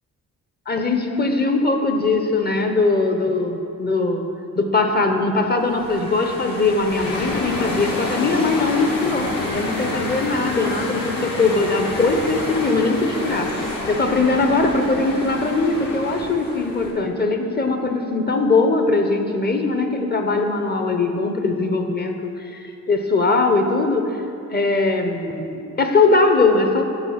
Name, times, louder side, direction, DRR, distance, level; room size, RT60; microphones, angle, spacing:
voice 1, 0.7-4.2 4.6-13.6 13.9-24.1 24.5-26.8, left 3 dB, 25° left, 5 dB, 0.9 m, -20 dB
sound 1, 5.6-16.9, left 2 dB, 60° left, 2.0 m, -28 dB
6.9 x 5.4 x 5.8 m, 2.7 s
cardioid pair, 60°, 37 cm